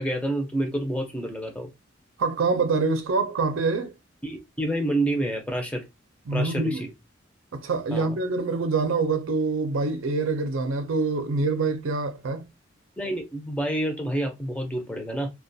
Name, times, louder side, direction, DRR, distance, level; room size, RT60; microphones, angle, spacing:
voice 1, 0.0-1.7 4.2-5.8 6.3-6.9 7.9-8.1 13.0-15.3, right 1 dB, 5° left, 0.5 m, -28 dB
voice 2, 2.2-3.9 6.3-6.8 7.5-12.5, right 3 dB, 80° right, 0.5 m, -25 dB
2.3 x 2.2 x 2.6 m
head